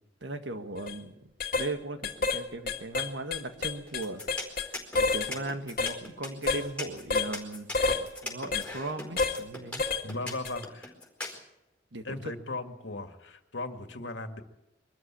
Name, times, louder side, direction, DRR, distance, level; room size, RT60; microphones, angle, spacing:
voice 1, 0.2-1.2 1.6-4.2 5.1-7.7 8.2-9.8 11.9-12.3, right 2 dB, 75° right, 7 dB, 1.8 m, -37 dB
sound 1, 0.8-0.9 1.4-1.7 2.0-2.4 2.7-4.7 4.9-5.3 5.8-6.0 6.5-6.6 7.1-7.3 7.7-8.0 8.5-8.7 9.2-9.4 9.8-10.0 10.4-10.6, left 4 dB, 55° left, 2.0 m, -28 dB
sound 2, 3.9-11.4, left 2 dB, 5° left, 4.4 m, -39 dB
voice 2, 10.0-10.9 12.0-14.4, left 2 dB, 80° left, 6 dB, 2.0 m, -37 dB
23.0 x 13.5 x 8.6 m, 0.92 s
head